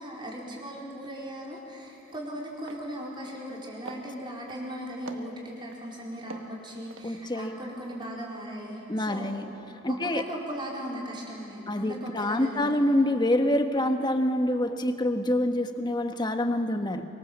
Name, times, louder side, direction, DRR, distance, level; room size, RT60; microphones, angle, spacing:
voice 1, 0.0-9.4 9.9-12.7, equal, 25° right, -3 dB, 4.5 m, -38 dB
sound 1, 1.5-1.7 2.0-2.3 2.6-2.8 3.2-3.6 3.8-4.7 5.1-5.8 6.3-7.6 7.9-8.1, right 3 dB, 75° right, 1.5 m, -45 dB
voice 2, 7.0-7.6 8.9-9.5 9.8-10.2 11.7-17.1, left 1 dB, 20° left, 7 dB, 1.3 m, -26 dB
24.5 x 24.5 x 7.5 m, 2.8 s
head